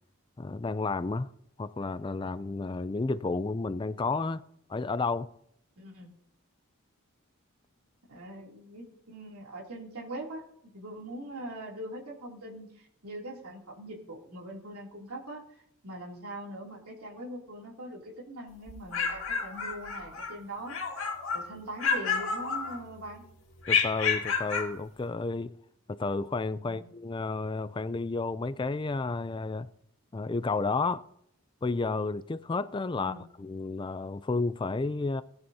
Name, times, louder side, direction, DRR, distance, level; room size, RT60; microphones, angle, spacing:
voice 1, 0.4-1.3 1.6-4.4 4.7-5.3 23.7-25.5 25.9-29.7 30.1-31.0 31.6-35.2, left 3 dB, 20° left, 0.3 m, -31 dB
voice 2, 5.8-6.1 8.1-10.4 10.7-20.8 21.3-23.2 26.6-26.9 33.0-33.2, right 1 dB, 90° right, 3.0 m, -42 dB
sound 1, 18.7-20.3 20.7-21.5 21.8-23.1 23.6-24.7, left 5 dB, 60° left, 2.4 m, -30 dB
19.0 x 10.5 x 2.8 m
head